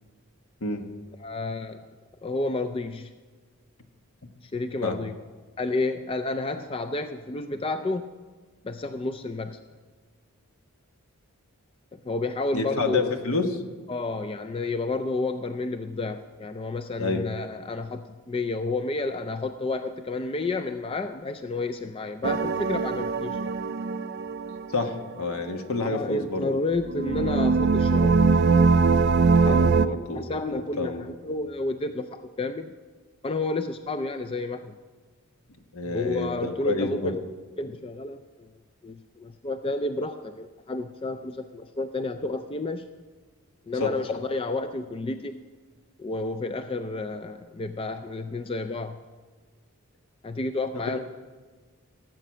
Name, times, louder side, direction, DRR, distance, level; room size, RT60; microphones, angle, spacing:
voice 1, 1.2-1.9 2.2-3.1 4.4-5.1 5.6-8.1 8.6-9.6 11.9-13.1 13.9-23.5 25.8-28.3 29.4-29.9 30.2-32.7 33.2-34.7 35.9-37.2 37.6-38.5 38.8-42.9 43.7-45.4 46.0-49.0 50.2-51.0, left 2 dB, 25° left, 8 dB, 0.3 m, -31 dB
voice 2, 12.5-13.6 17.0-17.2 24.7-26.5 29.4-30.2 30.5-31.1 35.7-37.2 43.7-43.9, left 3 dB, 70° left, 5 dB, 1.2 m, -29 dB
sound 1, 22.2-25.1 26.8-29.9, right 4 dB, 50° right, 0.4 m, -22 dB
16.5 x 7.9 x 6.2 m, 1.4 s
head